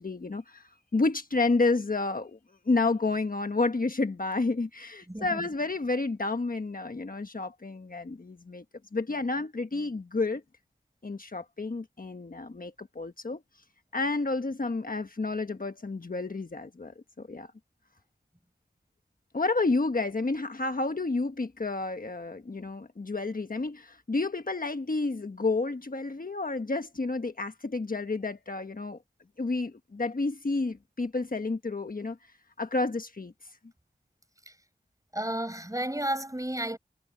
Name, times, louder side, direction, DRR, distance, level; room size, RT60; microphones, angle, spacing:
voice 1, 0.0-2.4 2.6-8.6 8.9-10.4 11.0-13.4 13.9-17.5 19.3-29.0 29.4-32.2 32.6-33.3, left 3 dB, 50° left, 1.3 m, -30 dB
voice 2, 5.1-5.5 34.5-34.6 35.1-36.8, right 1 dB, 20° right, 7.3 m, -32 dB
wide cardioid pair, 65°, 19 cm